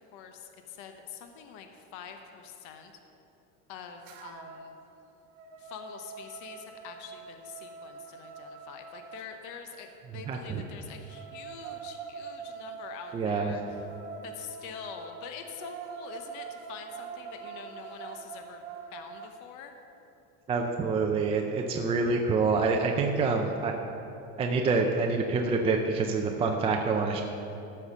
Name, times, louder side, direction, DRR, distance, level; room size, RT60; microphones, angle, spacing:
voice 1, 0.1-2.9 3.7-4.8 5.6-13.6 14.2-18.6 18.9-19.7, left 7 dB, 50° left, 5 dB, 0.9 m, -45 dB
sound 1, 4.1-4.7 5.1-9.3 10.7-19.3, right 6 dB, 80° right, 1.3 m, -44 dB
voice 2, 10.3-10.6 13.1-13.5 20.5-23.7 24.4-27.2, right 4 dB, 15° right, 2 dB, 0.4 m, -26 dB
13.5 x 5.7 x 6.6 m, 3.0 s
cardioid pair, 155°, 38 cm